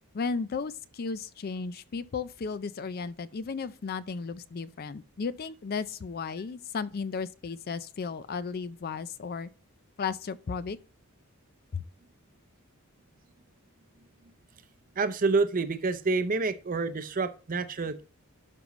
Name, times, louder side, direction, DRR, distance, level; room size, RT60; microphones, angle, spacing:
voice 1, 0.1-9.5 10.0-10.8 11.7-11.8, left 5 dB, 45° left, 0.4 m, -34 dB
voice 2, 15.0-18.0, right 3 dB, 40° right, 0.6 m, -28 dB
12.0 x 5.2 x 3.1 m
head